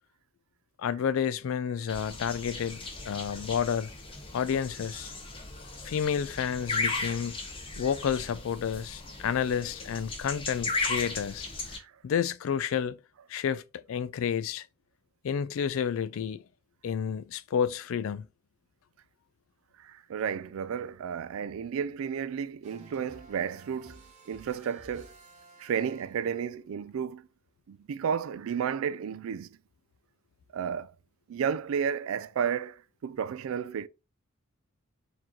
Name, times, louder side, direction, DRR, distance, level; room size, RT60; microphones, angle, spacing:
voice 1, 0.8-2.8 3.1-3.9 4.3-5.1 5.8-7.4 7.8-11.5 12.0-13.0 13.3-13.6 13.9-14.6 15.2-16.4 16.8-18.3, left 7 dB, 70° left, 0.3 m, -30 dB
sound 1, 1.9-11.8, left 3 dB, 25° left, 0.7 m, -36 dB
voice 2, 19.8-25.1 25.6-27.2 27.7-29.6 30.5-30.9 31.3-33.9, right 7 dB, 75° right, 0.3 m, -32 dB
sound 2, 22.6-26.5, right 1 dB, 30° right, 0.9 m, -54 dB
4.3 x 2.8 x 3.0 m
head